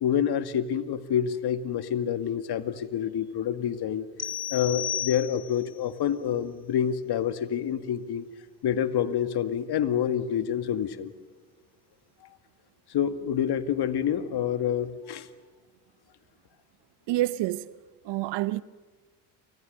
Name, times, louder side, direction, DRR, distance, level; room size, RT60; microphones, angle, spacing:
voice 1, 0.0-4.1 4.5-8.2 8.6-11.1 12.9-15.3, left 9 dB, 50° left, 2.0 m, -27 dB
sound 1, 4.2-5.7, left 10 dB, 30° left, 2.5 m, -33 dB
voice 2, 17.1-17.7 18.0-18.6, right 16 dB, 60° right, 1.0 m, -27 dB
29.0 x 25.5 x 6.7 m
hypercardioid pair, 60°, 48 cm